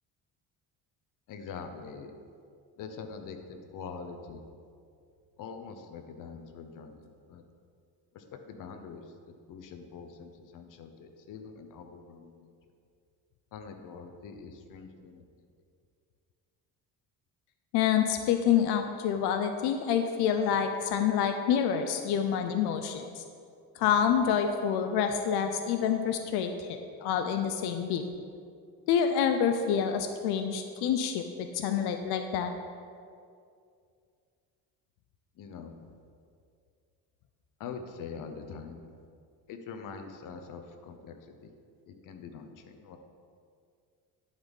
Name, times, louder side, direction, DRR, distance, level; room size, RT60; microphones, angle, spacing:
voice 1, 1.3-2.1 2.8-4.4 5.4-7.4 8.1-9.1 9.5-12.5 13.5-15.5 35.3-35.8 37.6-38.8 39.5-41.5 41.9-43.0, left 5 dB, 55° left, 6 dB, 0.8 m, -44 dB
voice 2, 17.7-23.2 23.8-28.0 28.9-32.5, left 8 dB, 90° left, 7 dB, 0.6 m, -27 dB
11.0 x 4.1 x 5.3 m, 2.3 s
cardioid pair, 130°, 38 cm